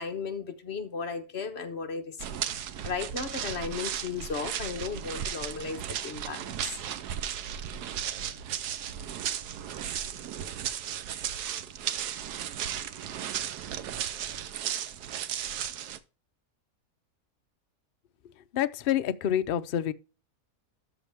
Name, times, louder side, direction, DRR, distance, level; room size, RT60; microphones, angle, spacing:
voice 1, 0.0-2.4 2.8-6.8, left 5 dB, 45° left, 1.2 m, -35 dB
sound 1, 2.2-16.0, right 9 dB, 80° right, 1.3 m, -35 dB
voice 2, 18.5-19.9, left 10 dB, 85° left, 0.5 m, -27 dB
13.0 x 5.9 x 3.5 m
omnidirectional pair, 1.7 m